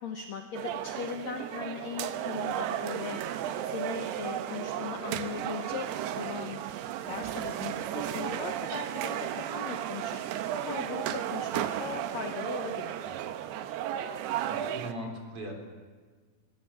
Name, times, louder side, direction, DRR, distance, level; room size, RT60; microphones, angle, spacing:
voice 1, 0.0-3.2 3.7-6.6 7.0-9.3 9.5-10.2 10.7-13.2, left 6 dB, 65° left, 4 dB, 1.9 m, -39 dB
Beach Bar Ambient, 0.5-14.9, right 11 dB, 85° right, 3.0 m, -34 dB
voice 2, 14.5-15.5, right 1 dB, 35° right, 2 dB, 4.2 m, -39 dB
23.5 x 20.0 x 7.2 m, 1.5 s
omnidirectional pair, 4.6 m